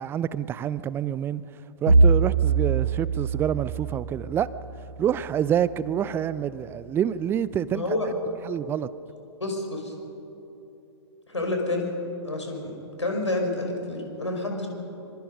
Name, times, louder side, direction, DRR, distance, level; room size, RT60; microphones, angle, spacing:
voice 1, 0.0-1.4 1.8-4.5 5.0-7.9 8.4-8.9, right 9 dB, 15° right, 0.5 m, -27 dB
Bowed string instrument, 1.9-6.1, right 4 dB, 90° right, 1.1 m, -24 dB
voice 2, 7.7-8.1 9.4-9.9 11.3-11.9 12.2-12.7 13.0-14.7, left 2 dB, 85° left, 5.4 m, -28 dB
25.5 x 24.5 x 5.4 m
figure-of-eight pair, 115°, 15 cm